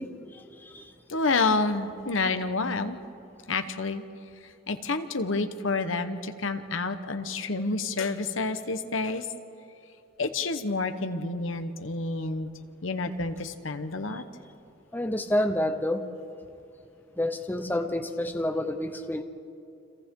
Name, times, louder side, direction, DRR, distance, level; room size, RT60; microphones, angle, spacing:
voice 1, 0.0-0.9 14.9-16.0 17.2-19.2, left 1 dB, 10° left, 6 dB, 0.9 m, -29 dB
voice 2, 1.1-3.0 3.5-4.0 4.4-9.3 10.2-12.5 12.8-14.2, left 3 dB, 75° left, 8 dB, 1.1 m, -29 dB
30.0 x 26.0 x 3.8 m, 2.7 s
head